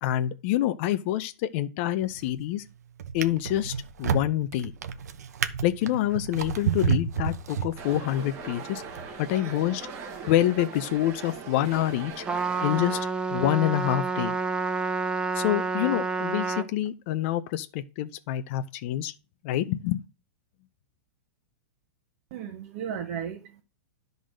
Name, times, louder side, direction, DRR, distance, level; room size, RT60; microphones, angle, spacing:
voice 1, 0.0-2.6 3.1-4.7 5.6-8.8 9.2-9.9 10.2-12.2 12.6-14.3 15.3-19.1 19.4-20.0, left 13 dB, 50° left, 0.6 m, -27 dB
Drawer open or close, 2.0-2.5 3.0-8.2 8.9-9.1, right 7 dB, 85° right, 1.0 m, -30 dB
sound 1, 7.8-13.0, right 5 dB, 30° right, 1.5 m, -40 dB
Trumpet, 12.3-16.7, right 4 dB, 10° right, 0.6 m, -29 dB
voice 2, 22.3-23.6, right 8 dB, 50° right, 1.2 m, -35 dB
11.0 x 4.0 x 6.4 m
hypercardioid pair, 145°, 9 cm